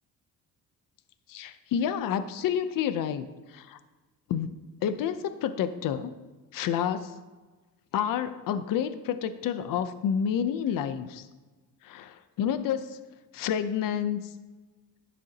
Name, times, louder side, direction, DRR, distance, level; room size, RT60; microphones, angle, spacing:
voice 1, 1.3-3.8 4.3-4.5 4.8-6.1 6.5-7.2 7.9-11.3 11.8-13.0 13.3-14.3, left 8 dB, 65° left, 11 dB, 0.7 m, -29 dB
11.5 x 9.5 x 2.9 m, 1.3 s
cardioid pair, 125°, 35 cm